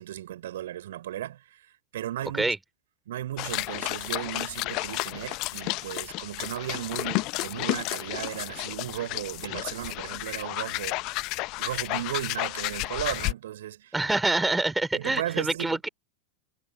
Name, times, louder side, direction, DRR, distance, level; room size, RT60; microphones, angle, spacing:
voice 1, 0.0-2.5 3.1-11.2 11.6-14.0 14.9-15.8, right 12 dB, 60° right, 6.1 m, -35 dB
sound 1, 3.4-13.3, left 23 dB, 40° left, 1.0 m, -32 dB
voice 2, 13.9-15.9, right 2 dB, 5° right, 3.3 m, -26 dB
figure-of-eight pair, 90°, 0 cm